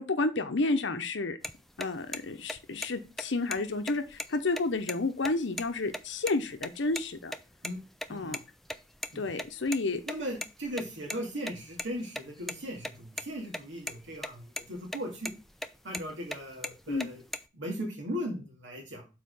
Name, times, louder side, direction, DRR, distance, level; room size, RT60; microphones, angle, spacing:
voice 1, 0.0-1.4 1.8-7.3 8.1-8.4 9.1-10.0 16.9-17.1, left 3 dB, 70° left, 7 dB, 0.8 m, -30 dB
sound 1, 1.4-1.5 1.8-1.9 2.1-2.2 2.5-2.9 3.2-3.3 3.5-3.6 3.9-4.9 5.2-5.3 5.6-5.7 5.9-6.3 6.6-7.1 7.3-8.4 8.7-11.2 11.5-13.2 13.5-13.6 13.9-14.3 14.6-15.0 15.3-16.4 16.6-17.4, left 1 dB, ahead, 0.3 m, -36 dB
voice 2, 10.1-15.3 15.8-17.2 17.5-19.1, equal, 75° right, 0 dB, 2.1 m, -38 dB
6.7 x 4.3 x 5.3 m, 0.30 s
head